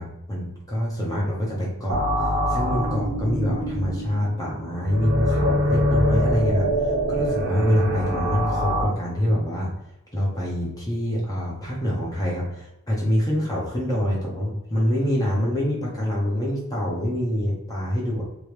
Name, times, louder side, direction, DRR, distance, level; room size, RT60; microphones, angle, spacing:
voice 1, 0.0-9.7 10.1-18.2, equal, 15° left, -5 dB, 0.8 m, -25 dB
sound 1, 1.9-8.8, equal, 80° right, 1.3 m, -24 dB
3.0 x 3.0 x 3.3 m, 0.89 s
head